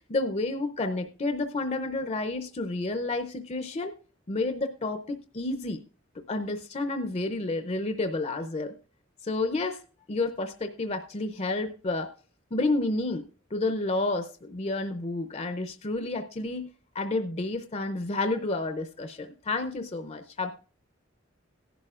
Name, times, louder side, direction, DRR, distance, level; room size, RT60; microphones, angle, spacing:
voice 1, 0.1-3.9 4.3-5.8 6.3-8.7 9.2-9.8 10.1-12.1 12.5-13.2 13.5-16.7 16.9-20.5, left 2 dB, 35° left, 8 dB, 0.6 m, -30 dB
17.0 x 11.0 x 2.4 m, 0.37 s
head